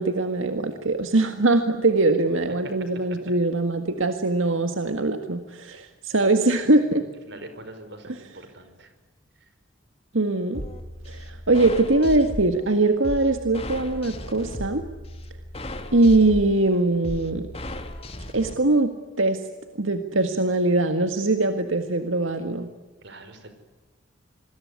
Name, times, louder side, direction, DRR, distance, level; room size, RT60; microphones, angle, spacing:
voice 1, 0.0-7.0 8.0-8.2 10.1-10.6 11.1-14.8 15.9-17.5 18.3-18.9 19.2-19.4 19.8-22.7, right 2 dB, 85° right, 7 dB, 1.8 m, -22 dB
voice 2, 7.3-8.9 23.0-23.5, right 1 dB, 60° right, 9 dB, 5.2 m, -43 dB
sound 1, 10.5-18.5, left 1 dB, 30° left, 2.5 m, -36 dB
27.0 x 21.5 x 9.8 m, 1.2 s
head